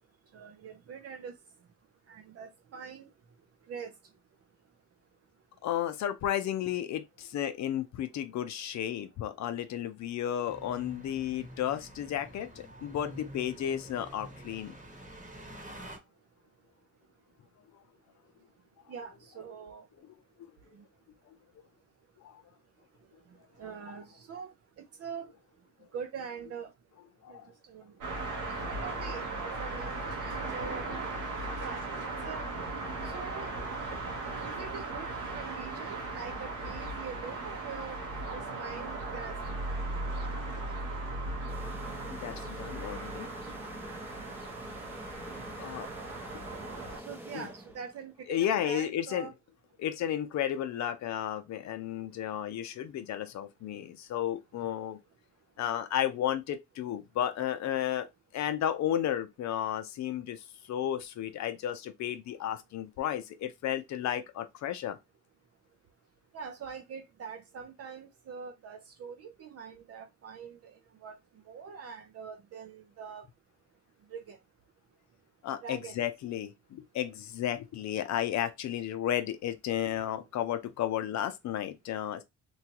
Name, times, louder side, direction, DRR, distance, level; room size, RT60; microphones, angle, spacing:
voice 1, 0.3-1.3 2.1-3.1 3.7-3.9 18.9-19.8 20.8-20.9 23.6-24.5 25.0-25.3 25.9-26.7 27.3-27.4 27.7-27.8 28.7-30.9 31.6-31.8 32.2-32.5 33.0-33.5 34.4-38.0 38.3-39.6 45.6-46.0 47.1-48.3 48.5-49.3 66.3-70.7 71.0-71.2 71.5-73.2 74.1-74.4 75.6-76.0, right 6 dB, 55° right, 0.5 m, -43 dB
voice 2, 5.6-14.7 21.6-21.7 22.2-22.4 23.6-23.7 27.2-27.5 31.6-31.7 42.0-43.3 45.6-45.9 47.3-47.5 48.3-49.3 49.8-55.0 55.6-58.1 58.3-65.0 75.4-82.2, left 11 dB, 65° left, 0.5 m, -33 dB
sound 1, 10.5-16.0, right 1 dB, 25° right, 1.1 m, -48 dB
sound 2, 28.0-47.0, right 2 dB, 85° right, 1.1 m, -37 dB
sound 3, 41.5-48.1, equal, 5° right, 0.7 m, -46 dB
3.0 x 2.3 x 2.8 m
cardioid pair, 90°, 30 cm